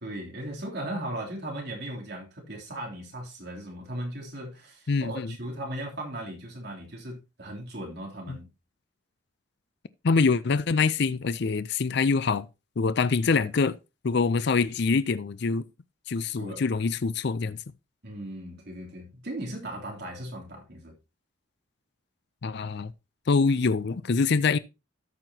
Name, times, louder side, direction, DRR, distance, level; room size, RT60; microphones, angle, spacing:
voice 1, 0.0-8.5 16.4-16.6 18.0-20.9, right 1 dB, 55° right, 3.1 m, -37 dB
voice 2, 4.9-5.3 8.3-8.4 10.0-12.5 12.8-13.8 14.0-15.6 16.1-17.6 22.4-22.9 23.3-24.6, left 4 dB, 55° left, 0.5 m, -25 dB
13.5 x 6.0 x 2.8 m
head